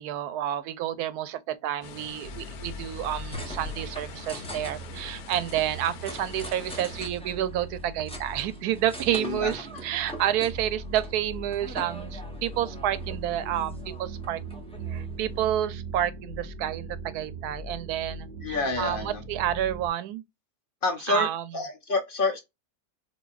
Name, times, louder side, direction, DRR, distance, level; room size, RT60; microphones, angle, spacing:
voice 1, 0.0-14.4 14.9-20.2 21.1-21.4, right 11 dB, 90° right, 1.1 m, -29 dB
sound 1, 1.8-7.1, left 5 dB, 80° left, 1.2 m, -43 dB
sound 2, 2.2-19.9, right 2 dB, 70° right, 0.4 m, -40 dB
sound 3, 3.3-15.5, equal, 5° left, 0.5 m, -44 dB
voice 2, 9.1-9.5 18.4-19.2 20.8-21.3 21.5-22.4, left 3 dB, 45° left, 0.8 m, -28 dB
3.9 x 2.8 x 2.3 m
omnidirectional pair, 1.6 m